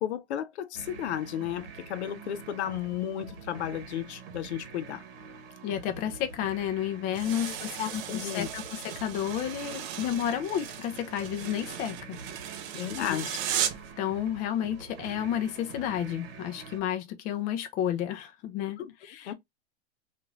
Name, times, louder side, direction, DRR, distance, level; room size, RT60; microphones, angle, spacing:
voice 1, 0.0-5.0 7.4-8.5 12.7-13.4 18.8-18.9 19.3-19.4, left 10 dB, 80° left, 0.6 m, -34 dB
sound 1, 0.7-16.8, right 5 dB, 55° right, 1.0 m, -46 dB
voice 2, 5.6-12.2 13.0-13.2 14.0-19.3, left 10 dB, 25° left, 0.4 m, -31 dB
sound 2, 7.1-13.9, right 9 dB, 35° right, 0.5 m, -36 dB
3.0 x 2.5 x 2.3 m
hypercardioid pair, 130°, 34 cm